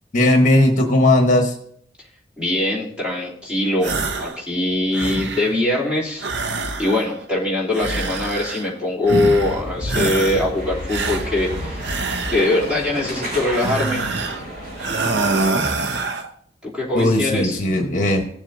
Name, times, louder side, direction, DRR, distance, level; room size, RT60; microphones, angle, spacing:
voice 1, 0.1-1.5 16.9-18.2, left 1 dB, 45° left, 3 dB, 1.1 m, -17 dB
voice 2, 2.4-11.8 12.3-14.1 16.6-17.6, left 2 dB, 5° right, -7 dB, 3.0 m, -22 dB
sound 1, 3.8-4.4 4.7-5.6 6.2-7.2 7.7-8.7 9.1-9.6 9.9-10.5 10.9-12.7 13.5-14.5 14.8-16.3, right 3 dB, 70° right, 0.8 m, -25 dB
sound 2, 9.0-15.5, right 1 dB, 50° right, 4.0 m, -31 dB
18.0 x 7.3 x 2.7 m, 0.67 s
head